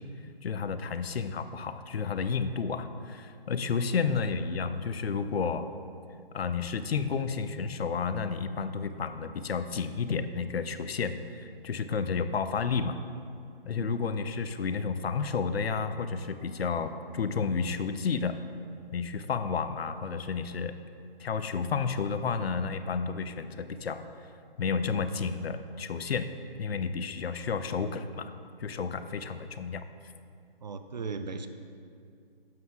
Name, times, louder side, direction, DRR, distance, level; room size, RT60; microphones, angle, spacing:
voice 1, 0.4-5.7 6.3-13.0 13.6-18.4 18.9-20.8 21.2-24.0 24.6-26.3 26.6-28.3 28.6-29.8, left 5 dB, 75° left, 10 dB, 0.6 m, -31 dB
voice 2, 30.6-31.5, right 4 dB, 45° right, 8 dB, 0.5 m, -37 dB
11.5 x 7.5 x 2.3 m, 2.4 s
hypercardioid pair, 155°, 31 cm